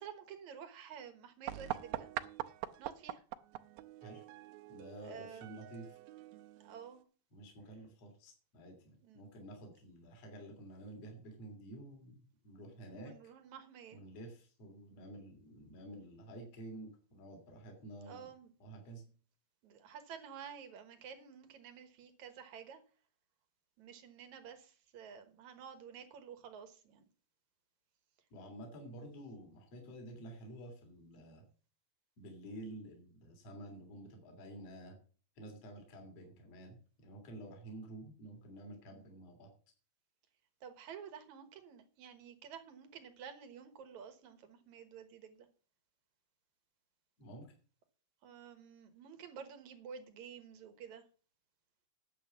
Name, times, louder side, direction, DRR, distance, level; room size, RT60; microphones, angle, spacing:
voice 1, 0.0-2.1 2.8-3.2 5.0-5.6 6.6-7.0 9.0-9.2 12.9-14.0 18.1-18.5 19.6-22.8 23.8-27.0 40.6-45.5 48.2-51.0, right 7 dB, 60° right, 8 dB, 2.1 m, -51 dB
sound 1, 1.5-7.0, right 14 dB, 80° right, 2.4 m, -44 dB
voice 2, 4.7-6.0 7.3-13.2 13.9-18.3 18.6-19.0 28.3-31.4 32.2-35.0 35.4-39.5 47.2-47.5, right 1 dB, 40° left, 3 dB, 3.7 m, -50 dB
10.0 x 7.6 x 7.1 m, 0.40 s
omnidirectional pair, 4.6 m